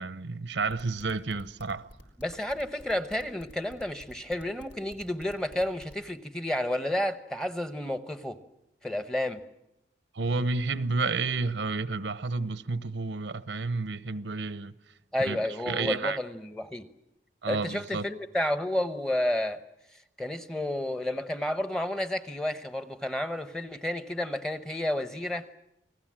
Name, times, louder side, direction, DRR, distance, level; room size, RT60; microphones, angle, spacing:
voice 1, 0.0-1.9 10.1-14.7 15.2-16.2 17.4-18.0, right 3 dB, 85° right, 0.9 m, -31 dB
sound 1, 0.7-6.0, equal, 90° left, 4.6 m, -50 dB
voice 2, 2.2-8.4 8.8-9.4 15.1-16.9 17.5-19.6 20.2-25.5, left 1 dB, 5° left, 0.9 m, -31 dB
29.0 x 19.5 x 7.5 m
head